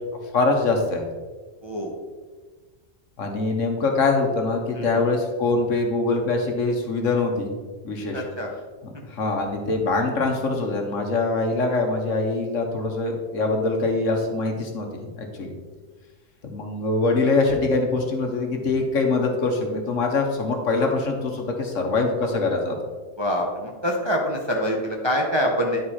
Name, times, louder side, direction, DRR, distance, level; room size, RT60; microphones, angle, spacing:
voice 1, 0.3-1.0 3.2-7.5 7.8-8.2 8.8-15.5 16.5-22.8, left 3 dB, 65° left, 2 dB, 1.5 m, -23 dB
voice 2, 1.6-1.9 4.7-4.9 8.1-8.5 23.2-25.8, equal, 25° right, 0 dB, 0.7 m, -25 dB
10.0 x 4.7 x 4.3 m, 1.4 s
omnidirectional pair, 1.5 m